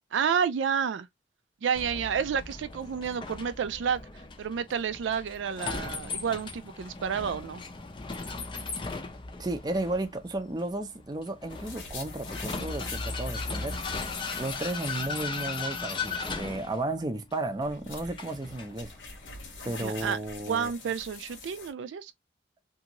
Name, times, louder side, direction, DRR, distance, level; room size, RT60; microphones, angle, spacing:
voice 1, 0.1-1.1 1.6-4.0 4.4-7.6 19.8-20.2 20.5-22.1, right 7 dB, 85° right, 0.4 m, -30 dB
Vehicle, 1.7-19.8, left 4 dB, 25° left, 0.5 m, -38 dB
voice 2, 9.4-14.0 14.3-18.9 19.6-20.7, right 2 dB, 20° right, 0.5 m, -33 dB
sound 1, 11.5-16.0 16.3-16.4 17.3-21.7, left 4 dB, 85° left, 1.1 m, -44 dB
2.7 x 2.5 x 2.9 m
head